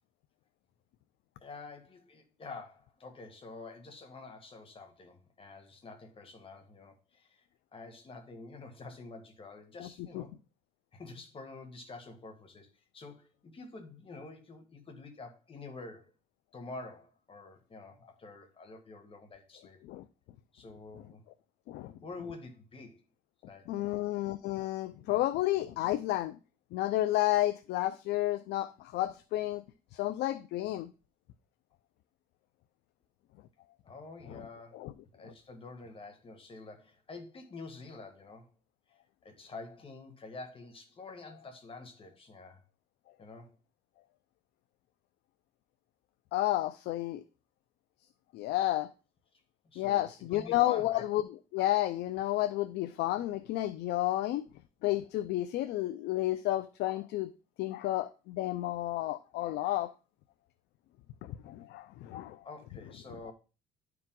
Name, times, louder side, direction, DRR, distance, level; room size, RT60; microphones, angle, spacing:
voice 1, 1.4-7.5 7.7-10.3 10.9-16.1 16.5-19.8 20.5-21.2 22.0-23.0 23.5-24.0 33.8-34.8 35.1-38.5 39.2-42.6 43.2-43.6 49.6-51.0 62.4-63.3, left 3 dB, 30° left, 1.6 m, -48 dB
voice 2, 23.7-26.4 26.7-29.6 29.9-30.9 34.3-34.4 34.7-34.9 35.2-35.3 46.3-47.2 48.3-48.9 49.8-51.2 51.5-54.4 54.8-57.3 57.6-59.9 61.2-62.4 63.3-63.4, left 15 dB, 80° left, 0.5 m, -31 dB
10.5 x 4.7 x 3.8 m
cardioid pair, 110°, 17 cm